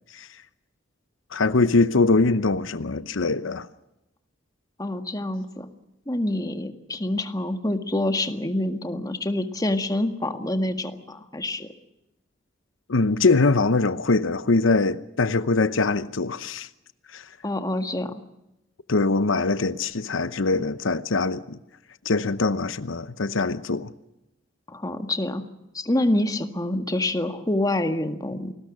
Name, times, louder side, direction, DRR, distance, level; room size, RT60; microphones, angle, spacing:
voice 1, 1.3-3.7 12.9-16.7 17.1-17.3 18.9-21.6 22.0-23.9, left 3 dB, 85° left, 0.9 m, -22 dB
voice 2, 4.8-5.7 6.1-11.7 17.4-18.2 24.7-25.4 25.7-28.5, left 1 dB, 20° left, 1.8 m, -26 dB
28.5 x 20.0 x 6.4 m
head